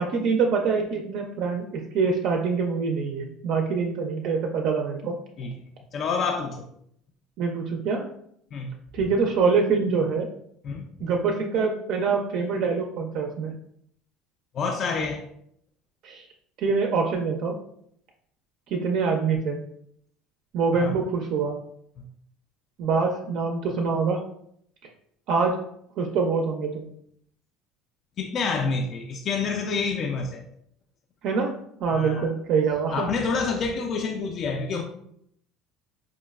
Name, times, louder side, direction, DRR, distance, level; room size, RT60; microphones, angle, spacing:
voice 1, 0.0-5.2 7.4-8.0 8.9-10.3 11.0-13.5 16.0-16.3 16.6-17.5 18.7-19.6 20.5-21.6 22.8-24.2 25.3-25.6 26.0-26.9 31.2-31.5 31.8-33.1, right 5 dB, 60° right, 2 dB, 0.4 m, -25 dB
voice 2, 5.9-6.7 8.5-8.7 10.6-10.9 14.5-15.2 20.7-20.9 28.2-30.4 31.9-32.3 32.9-34.8, left 4 dB, 40° left, 2 dB, 0.3 m, -28 dB
4.5 x 2.1 x 2.3 m, 0.69 s
cardioid pair, 125°, 0 cm